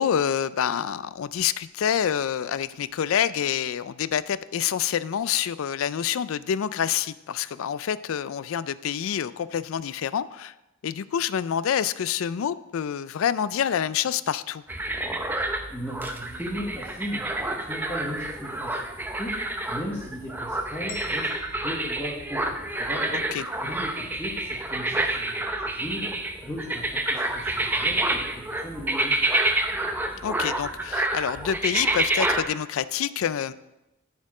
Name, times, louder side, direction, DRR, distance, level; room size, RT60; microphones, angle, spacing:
voice 1, 0.0-10.5 10.8-14.6 23.1-23.4 30.2-33.5, left 8 dB, 85° left, 16 dB, 0.4 m, -27 dB
sound 1, 14.7-32.4, right 1 dB, 10° right, 0.6 m, -28 dB
voice 2, 15.7-19.3 19.7-21.3 21.6-23.2 23.6-26.1 26.4-28.2 28.6-29.2, equal, 10° left, -7 dB, 1.3 m, -36 dB
sound 2, 20.9-22.9, left 3 dB, 50° left, 2.1 m, -45 dB
13.0 x 4.4 x 4.9 m, 0.98 s
head